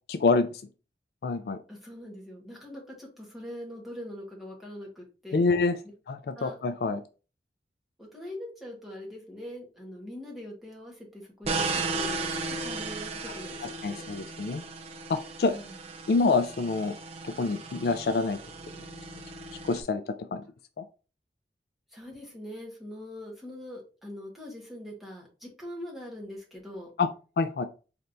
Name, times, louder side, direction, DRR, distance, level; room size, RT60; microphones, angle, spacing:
voice 1, 0.1-0.6 1.2-1.6 5.3-5.8 6.1-7.0 13.8-14.6 15.1-15.6 16.1-16.9 17.2-18.4 19.7-20.0 20.3-20.4 20.8-20.9 27.0-27.1 27.4-27.6, left 3 dB, 60° left, 9 dB, 0.3 m, -26 dB
voice 2, 1.7-5.5 6.3-6.6 8.0-14.0 15.4-15.8 21.9-26.9, left 1 dB, ahead, -3 dB, 1.3 m, -42 dB
sound 1, 11.4-19.8, right 3 dB, 35° right, 0.5 m, -35 dB
4.2 x 3.4 x 2.6 m, 0.34 s
head